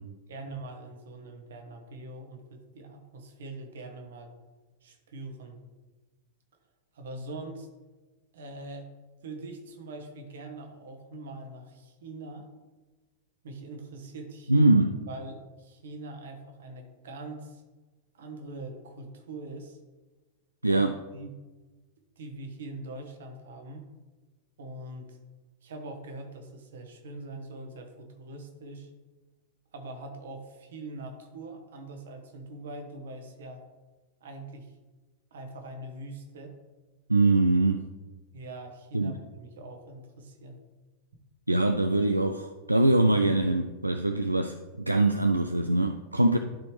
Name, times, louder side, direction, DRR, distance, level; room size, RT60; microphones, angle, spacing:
voice 1, 0.3-4.3 4.8-5.6 6.9-7.7 8.3-8.9 9.2-12.5 13.4-14.7 15.1-17.6 18.1-19.8 20.7-21.3 22.2-23.8 24.6-25.2 25.6-28.9 29.7-33.6 34.2-34.7 35.3-36.5 38.3-40.6, right 2 dB, 60° right, 1.3 m, -42 dB
voice 2, 14.5-14.9 20.6-20.9 37.1-37.8 38.9-39.1 41.5-46.4, right 2 dB, 85° right, 0.3 m, -23 dB
12.0 x 4.3 x 3.2 m
figure-of-eight pair, 90°, 0 cm